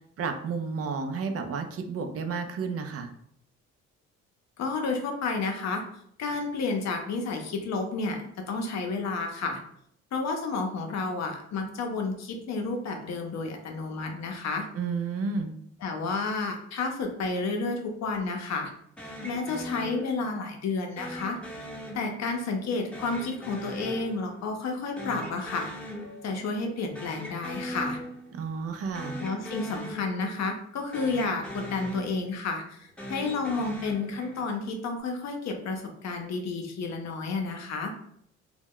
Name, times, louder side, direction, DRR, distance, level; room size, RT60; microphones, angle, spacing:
voice 1, 0.2-3.1 14.7-15.5 28.3-29.2, right 5 dB, 50° right, 7 dB, 0.4 m, -31 dB
voice 2, 4.6-5.8 6.2-9.6 10.1-14.7 15.8-18.7 19.2-21.4 21.9-25.7 26.2-28.0 29.2-37.9, left 3 dB, 60° left, 3 dB, 0.6 m, -31 dB
sound 1, 19.0-20.5 21.0-22.5 22.9-24.7 25.0-26.5 26.8-28.5 28.9-30.7 30.9-32.5 32.9-34.6, equal, 5° left, 0.7 m, -40 dB
2.2 x 2.0 x 3.6 m, 0.69 s
cardioid pair, 90°, 30 cm